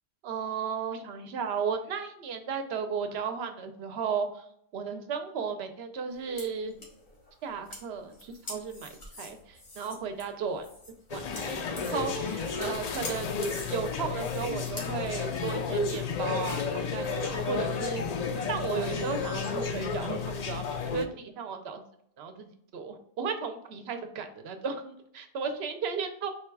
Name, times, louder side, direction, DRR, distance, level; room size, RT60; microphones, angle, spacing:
voice 1, 0.2-4.4 4.7-6.8 7.4-8.9 9.2-10.7 11.1-13.4 13.7-18.0 18.5-21.8 22.2-26.3, right 6 dB, 75° right, 7 dB, 0.9 m, -35 dB
sound 1, 6.1-14.8, left 2 dB, 85° left, 1.6 m, -45 dB
sound 2, 11.1-21.1, left 5 dB, 55° left, 0.4 m, -32 dB
4.3 x 2.3 x 4.5 m, 0.69 s
omnidirectional pair, 1.1 m